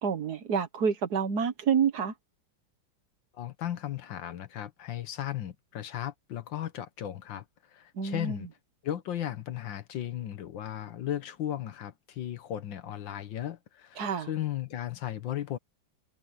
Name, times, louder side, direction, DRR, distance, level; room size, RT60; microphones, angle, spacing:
voice 1, 0.0-2.1 8.0-8.4 14.0-14.3, right 6 dB, 60° right, 1.7 m, -28 dB
voice 2, 3.3-8.5 8.8-15.6, left 11 dB, 75° left, 1.8 m, -36 dB
omnidirectional pair, 2.1 m